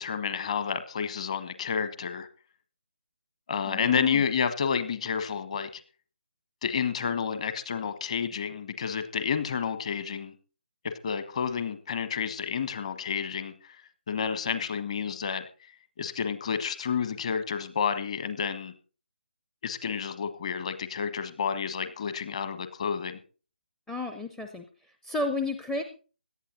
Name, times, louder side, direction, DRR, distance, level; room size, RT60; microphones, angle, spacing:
voice 1, 0.0-2.3 3.5-5.8 6.6-10.3 10.8-13.8 14.1-15.5 16.0-18.7 19.6-23.2, left 6 dB, 35° left, 11 dB, 1.4 m, -30 dB
voice 2, 3.6-4.2 23.9-24.6 25.0-25.8, left 2 dB, 5° left, 7 dB, 0.6 m, -32 dB
17.5 x 11.5 x 4.0 m, 0.37 s
figure-of-eight pair, 150°, 6 cm